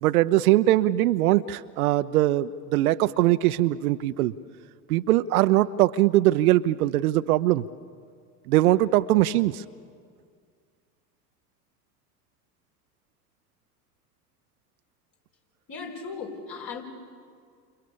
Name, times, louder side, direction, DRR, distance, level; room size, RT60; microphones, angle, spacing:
voice 1, 0.0-4.3 4.9-7.6 8.5-9.6, right 15 dB, 65° right, 13 dB, 0.8 m, -21 dB
voice 2, 15.7-16.8, left 5 dB, 45° left, 1 dB, 5.8 m, -37 dB
30.0 x 28.0 x 7.0 m, 2.1 s
hypercardioid pair, 80°, 47 cm